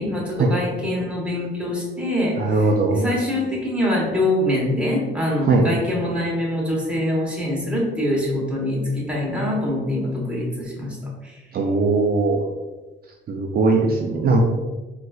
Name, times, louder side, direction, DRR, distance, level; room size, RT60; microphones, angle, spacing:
voice 1, 0.0-11.4, left 1 dB, 5° right, -4 dB, 1.1 m, -24 dB
voice 2, 2.4-3.0 5.4-5.7 11.5-12.4 13.3-14.4, right 3 dB, 50° right, 0 dB, 0.4 m, -19 dB
4.1 x 2.5 x 2.3 m, 1.2 s
cardioid pair, 90°, 20 cm